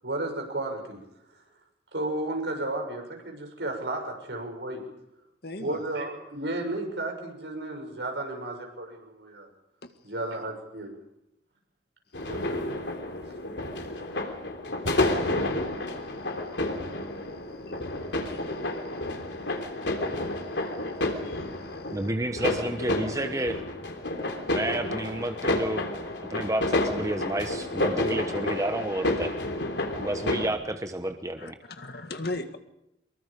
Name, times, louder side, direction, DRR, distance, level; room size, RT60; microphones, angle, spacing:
voice 1, 0.0-1.0 1.9-4.8 5.6-9.5 10.0-10.9 12.3-12.6, right 2 dB, 75° right, 3 dB, 7.1 m, -33 dB
voice 2, 5.4-5.8 17.7-17.8 18.3-18.4 21.2-21.4 31.4-32.6, left 2 dB, 60° left, 8 dB, 2.0 m, -36 dB
sound 1, 12.1-30.5, left 1 dB, 90° left, 3.4 m, -30 dB
voice 3, 21.9-23.6 24.5-25.8 26.2-29.3 30.0-31.6, right 1 dB, 20° right, 7 dB, 1.1 m, -30 dB
24.5 x 22.5 x 5.3 m, 0.84 s
head